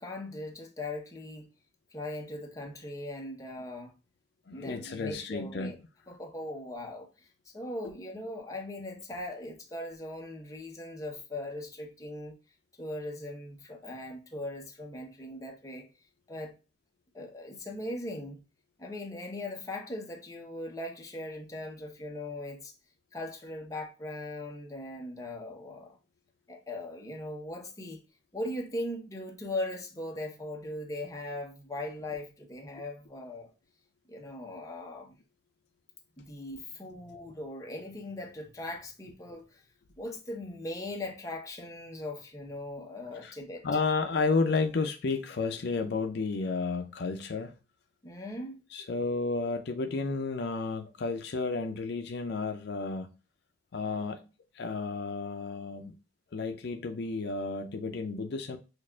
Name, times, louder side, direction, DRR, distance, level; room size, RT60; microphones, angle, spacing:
voice 1, 0.0-1.5 1.9-3.9 4.5-5.8 6.1-7.1 7.5-12.3 12.8-15.9 16.3-16.5 17.1-18.4 18.8-22.7 23.1-26.0 26.5-28.0 28.3-33.5 34.1-35.2 36.2-39.6 40.0-43.6 48.0-48.6, left 1 dB, 20° left, 0.8 m, -39 dB
voice 2, 4.5-5.7 43.2-43.3 43.6-47.6 48.7-53.1 53.7-55.9 56.3-58.6, left 4 dB, 65° left, 0.5 m, -32 dB
6.3 x 2.4 x 2.3 m
head